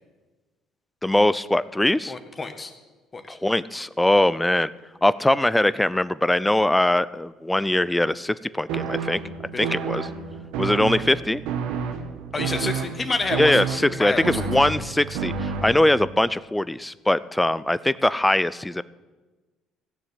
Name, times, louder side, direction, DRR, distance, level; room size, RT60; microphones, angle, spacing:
voice 1, 1.0-2.1 3.3-4.7 5.0-9.2 9.6-10.1 10.6-11.4 13.4-18.8, left 1 dB, 10° left, 17 dB, 0.5 m, -21 dB
voice 2, 2.1-2.7 3.1-3.4 9.7-9.8 12.3-13.7 13.9-14.5, left 3 dB, 30° left, 6 dB, 1.8 m, -29 dB
sound 1, 8.7-16.1, right 6 dB, 80° right, 1.4 m, -30 dB
15.5 x 7.0 x 9.2 m, 1.2 s
supercardioid pair, 80°, 0 cm